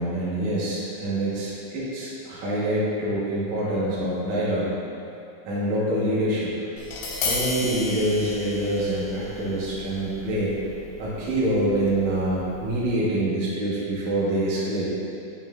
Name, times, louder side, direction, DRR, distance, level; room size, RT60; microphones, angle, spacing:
voice 1, 0.0-4.7 5.4-6.5 7.2-10.5 11.0-14.8, right 1 dB, 75° right, -8 dB, 1.6 m, -25 dB
Tap, 6.8-12.9, left 3 dB, 70° left, 2.8 m, -34 dB
11.5 x 5.7 x 2.5 m, 2.6 s
omnidirectional pair, 5.5 m